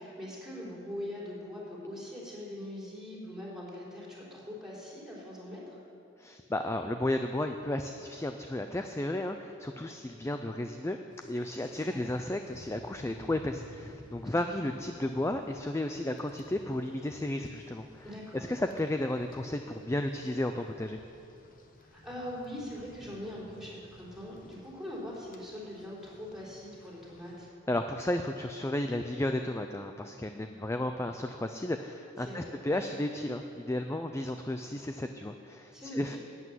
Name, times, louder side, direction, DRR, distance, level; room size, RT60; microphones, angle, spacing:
voice 1, 0.0-5.8 11.6-12.0 14.2-14.7 18.0-18.5 21.8-27.5 32.2-32.6 35.7-36.0, left 1 dB, 5° right, -6 dB, 3.8 m, -42 dB
voice 2, 6.2-11.0 11.3-18.0 18.3-21.0 27.7-36.2, left 1 dB, 15° left, 6 dB, 0.4 m, -33 dB
Rain, 11.1-27.4, left 1 dB, 45° left, 1.1 m, -55 dB
12.0 x 8.3 x 9.3 m, 2.7 s
head